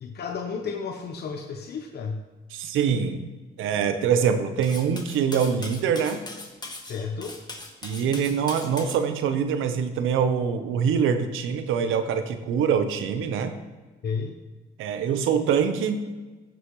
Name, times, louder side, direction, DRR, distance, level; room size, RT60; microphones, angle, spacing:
voice 1, 0.0-2.2 6.8-7.4 14.0-14.3, left 5 dB, 55° left, 3 dB, 0.9 m, -32 dB
voice 2, 2.5-3.3 3.6-6.2 7.8-13.5 14.8-16.0, right 7 dB, 85° right, 8 dB, 0.9 m, -24 dB
Cutlery silverware, 4.6-9.0, left 2 dB, 20° left, 1.4 m, -39 dB
15.0 x 6.4 x 3.1 m, 1.2 s
cardioid pair, 90°, 20 cm